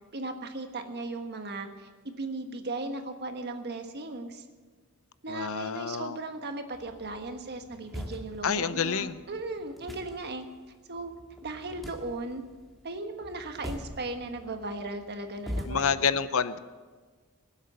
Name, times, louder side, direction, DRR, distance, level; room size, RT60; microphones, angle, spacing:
voice 1, 0.1-4.5 5.2-10.5 10.9-11.1 11.4-12.4 12.8-15.9, right 2 dB, 50° right, 6 dB, 1.5 m, -37 dB
voice 2, 5.3-6.2 8.4-9.2 15.7-16.6, left 6 dB, 70° left, 14 dB, 0.6 m, -28 dB
sound 1, 6.7-15.9, equal, ahead, 1.7 m, -43 dB
18.5 x 8.1 x 7.9 m, 1.4 s
head